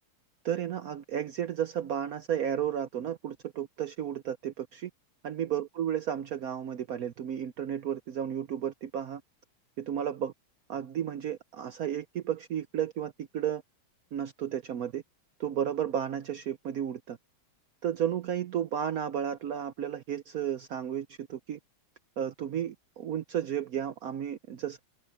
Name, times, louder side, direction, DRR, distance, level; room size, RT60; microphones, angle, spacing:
voice 1, 0.4-4.9 5.2-9.2 9.8-10.3 10.7-13.6 14.1-15.0 15.4-17.2 17.8-21.6 22.2-24.8, right 9 dB, 75° right, 0.8 m, -33 dB
open air
omnidirectional pair, 2.3 m